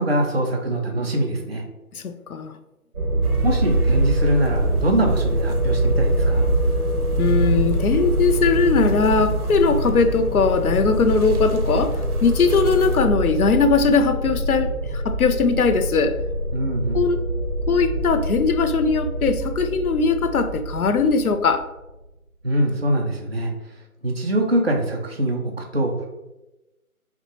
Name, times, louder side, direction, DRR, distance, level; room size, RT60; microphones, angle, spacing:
voice 1, 0.0-1.6 3.4-6.5 16.5-17.0 22.4-23.5 24.0-26.1, right 1 dB, 45° right, 1 dB, 0.4 m, -23 dB
voice 2, 1.9-2.5 7.2-16.1 16.9-17.2 17.7-21.6, left 5 dB, 80° left, 9 dB, 0.6 m, -20 dB
sound 1, 2.9-21.8, right 1 dB, 65° right, 1.2 m, -24 dB
sound 2, 3.2-13.0, right 3 dB, 85° right, 0.8 m, -33 dB
5.8 x 2.2 x 2.8 m, 0.99 s
figure-of-eight pair, 180°, 44 cm